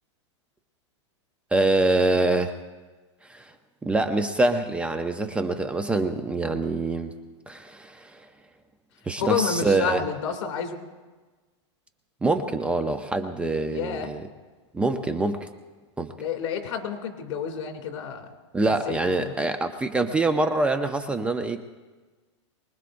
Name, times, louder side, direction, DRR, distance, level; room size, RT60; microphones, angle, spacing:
voice 1, 1.5-2.5 3.3-3.5 3.8-7.1 7.5-8.3 9.1-10.0 12.2-14.3 14.7-15.5 16.0-16.1 18.5-21.6, right 2 dB, 5° right, 7 dB, 0.6 m, -25 dB
voice 2, 9.2-10.8 13.7-14.1 16.2-18.3 18.9-19.3, left 7 dB, 70° left, 4 dB, 2.6 m, -29 dB
24.0 x 20.5 x 2.6 m, 1.3 s
supercardioid pair, 150°, 16 cm